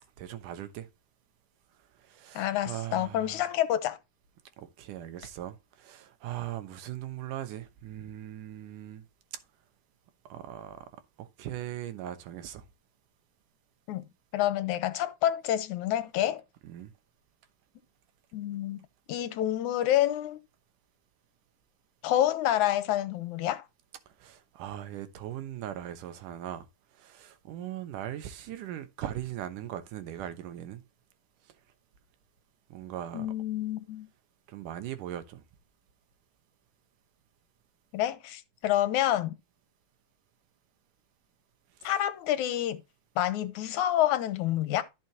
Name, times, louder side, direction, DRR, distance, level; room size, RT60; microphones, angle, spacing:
voice 1, 0.2-0.9 2.1-3.4 4.6-9.0 10.3-10.9 11.2-12.6 16.6-16.9 24.2-26.7 27.0-30.8 32.7-33.3 34.5-35.4 41.8-41.9, right 11 dB, 85° right, 2.7 m, -39 dB
voice 2, 2.4-4.0 13.9-14.0 14.3-16.4 18.3-18.8 19.1-20.4 22.0-23.6 33.1-34.1 37.9-39.3 41.8-42.8 43.2-44.8, left 12 dB, 75° left, 2.3 m, -28 dB
13.5 x 6.4 x 2.9 m
omnidirectional pair, 3.6 m